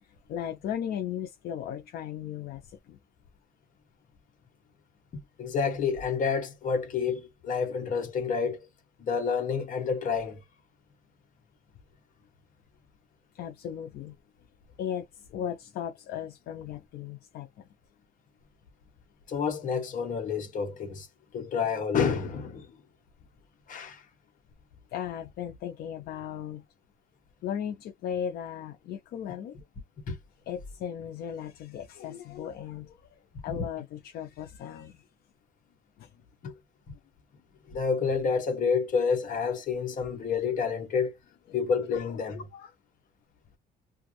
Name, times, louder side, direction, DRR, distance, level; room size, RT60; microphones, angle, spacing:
voice 1, 0.0-3.0 13.3-14.2 14.8-17.6 24.9-26.6 27.4-29.6 30.5-33.0 33.4-35.0 36.0-36.1 41.9-42.7, left 9 dB, 70° left, 0.6 m, -37 dB
voice 2, 5.4-8.7 9.0-10.4 19.3-21.1 21.3-22.7 23.7-24.0 30.1-30.2 33.5-33.6 36.4-36.5 37.7-41.1 41.5-42.5, left 5 dB, 50° left, 1.3 m, -29 dB
2.4 x 2.4 x 3.1 m
cardioid pair, 110°, 17 cm